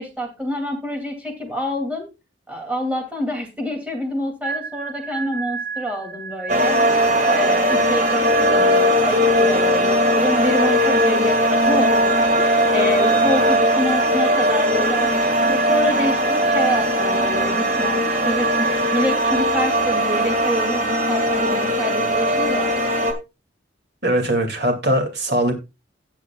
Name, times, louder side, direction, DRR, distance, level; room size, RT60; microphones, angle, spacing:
voice 1, 0.0-2.1 2.5-6.8 7.2-22.7, equal, 10° right, 2.6 m, -27 dB
sound 1, 4.4-20.0, right 5 dB, 85° right, 2.6 m, -31 dB
sound 2, 6.5-23.1, equal, 40° right, 2.0 m, -19 dB
voice 2, 24.0-25.5, right 1 dB, 60° right, 2.5 m, -20 dB
17.5 x 7.2 x 2.4 m
head